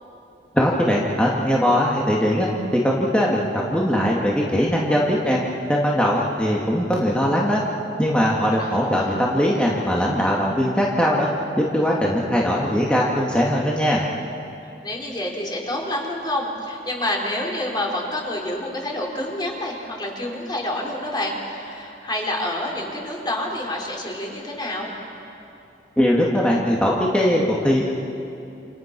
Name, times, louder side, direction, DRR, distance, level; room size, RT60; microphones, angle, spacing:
voice 1, 0.5-5.4 5.7-7.6 8.0-11.3 11.6-14.0 26.0-27.8, equal, 5° left, -4 dB, 2.3 m, -20 dB
voice 2, 8.6-9.2 14.8-24.9, left 1 dB, 25° left, -2 dB, 4.6 m, -28 dB
29.5 x 29.0 x 6.2 m, 2.7 s
head